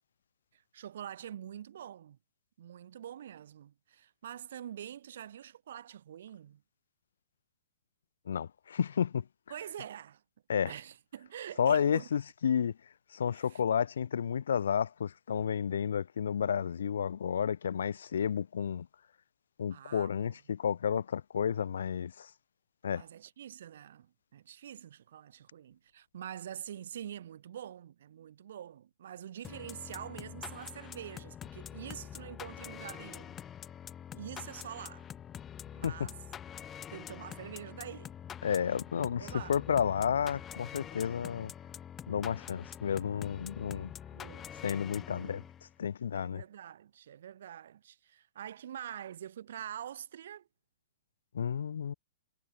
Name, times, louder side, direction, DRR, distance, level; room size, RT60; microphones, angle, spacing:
voice 1, 0.5-2.2 2.6-6.6 9.5-10.2 10.7-12.1 13.3-13.6 19.7-20.3 22.9-33.4 34.1-35.1 35.7-36.1 36.9-38.1 39.2-39.6 44.1-44.6 44.9-45.5 46.1-50.5, right 10 dB, 70° right, 7.8 m, -45 dB
voice 2, 8.3-9.2 10.5-10.7 11.6-12.7 13.1-18.9 19.6-22.3 22.8-23.0 35.8-36.1 38.4-41.5 42.1-43.9 44.6-45.4 45.8-46.4 51.3-51.9, left 8 dB, 80° left, 1.8 m, -31 dB
sound 1, 29.4-45.7, left 9 dB, 20° left, 1.8 m, -46 dB
hypercardioid pair, 140°, 0 cm